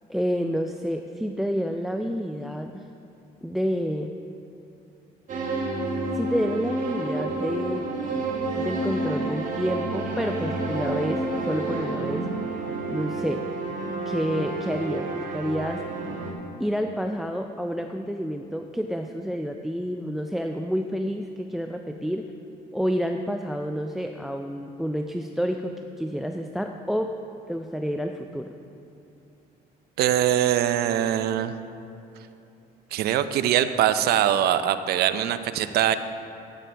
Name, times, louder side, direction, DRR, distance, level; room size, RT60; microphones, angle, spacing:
voice 1, 0.1-2.8 3.4-4.1 6.1-7.9 8.6-12.3 12.9-13.5 14.1-15.8 16.6-22.3 22.7-27.1 27.5-28.5, equal, ahead, 5 dB, 0.3 m, -29 dB
sound 1, 5.3-16.3, right 2 dB, 50° right, 1.7 m, -29 dB
voice 2, 30.0-31.6 32.9-36.0, right 11 dB, 70° right, 12 dB, 0.5 m, -22 dB
12.5 x 9.0 x 3.4 m, 2.8 s
cardioid pair, 110°, 17 cm